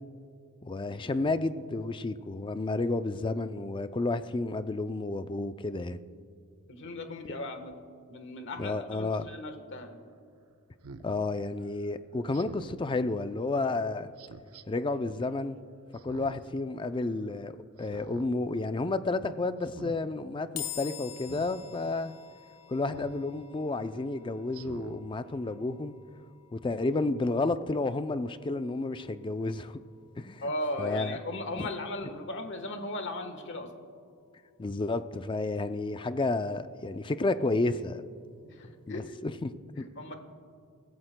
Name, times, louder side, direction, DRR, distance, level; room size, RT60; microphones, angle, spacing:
voice 1, 0.6-6.0 8.6-9.3 11.0-14.1 14.7-15.6 16.0-22.1 22.7-25.9 26.5-29.8 30.2-30.4 30.8-31.2 31.6-31.7 34.6-38.0 38.9-39.8, left 2 dB, 20° left, 0.4 m, -31 dB
voice 2, 6.7-7.8 8.1-10.0 30.4-33.7 38.4-39.2 39.8-40.2, left 1 dB, 55° left, 1.2 m, -37 dB
Speech synthesizer, 9.2-9.4 10.8-11.1 12.3-12.8 14.2-14.6 15.9-16.5 16.9-17.0 17.8-18.3 18.7-19.0 19.6-20.0 21.2-21.5 22.9-23.2 23.7-23.8 24.5-25.0 25.5-25.6, right 4 dB, 85° right, 0.6 m, -47 dB
sound 1, 20.6-33.9, left 12 dB, 80° left, 1.1 m, -49 dB
23.5 x 14.0 x 2.2 m
head